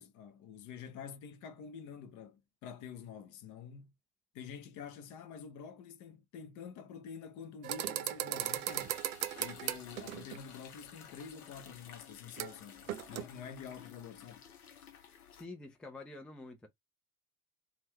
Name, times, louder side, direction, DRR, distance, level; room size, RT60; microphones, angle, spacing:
voice 1, 0.0-3.9 4.3-9.0 9.4-14.4, left 7 dB, 40° left, 0.8 m, -48 dB
sound 1, 7.6-10.4 12.4-12.6 12.9-13.2, right 12 dB, 65° right, 0.5 m, -37 dB
sound 2, 8.4-15.5, left 8 dB, 70° left, 0.8 m, -54 dB
voice 2, 15.3-16.7, left 2 dB, ahead, 0.5 m, -48 dB
2.6 x 2.3 x 3.4 m
figure-of-eight pair, 65°, 45 cm